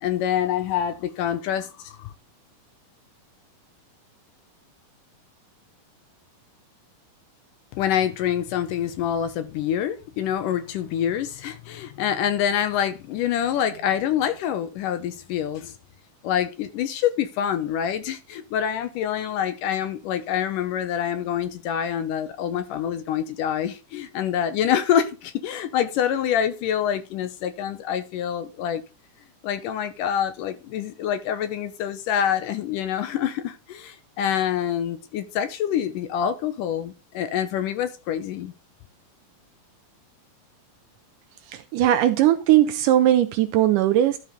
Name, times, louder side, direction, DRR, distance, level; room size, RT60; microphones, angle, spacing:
voice 1, 0.0-2.1 7.7-15.7 16.2-28.8 29.4-38.5, left 9 dB, 75° left, 2.2 m, -26 dB
voice 2, 41.5-44.2, right 12 dB, 80° right, 1.9 m, -19 dB
12.5 x 4.4 x 5.0 m
omnidirectional pair, 4.2 m